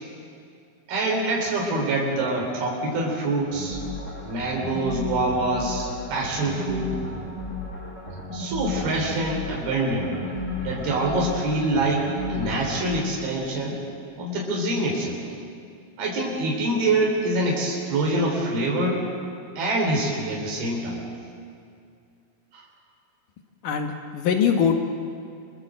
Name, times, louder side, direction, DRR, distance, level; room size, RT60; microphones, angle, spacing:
voice 1, 0.9-3.8 4.2-6.9 8.3-10.1 10.6-13.8 14.2-15.2 16.0-19.0 19.6-21.0 22.5-22.6, right 2 dB, 80° right, -2 dB, 5.7 m, -25 dB
sound 1, 3.5-13.0, left 2 dB, 20° left, 6.9 m, -33 dB
voice 2, 23.6-24.7, left 7 dB, 65° left, 4 dB, 2.7 m, -22 dB
29.5 x 22.0 x 7.8 m, 2.4 s
omnidirectional pair, 4.3 m